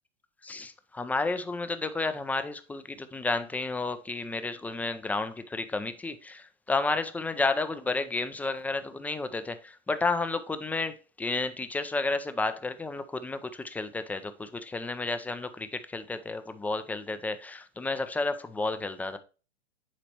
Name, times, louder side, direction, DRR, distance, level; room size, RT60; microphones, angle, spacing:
voice 1, 0.4-19.2, left 3 dB, 5° left, 0.4 m, -31 dB
10.0 x 4.2 x 2.9 m
hypercardioid pair, 120°, 34 cm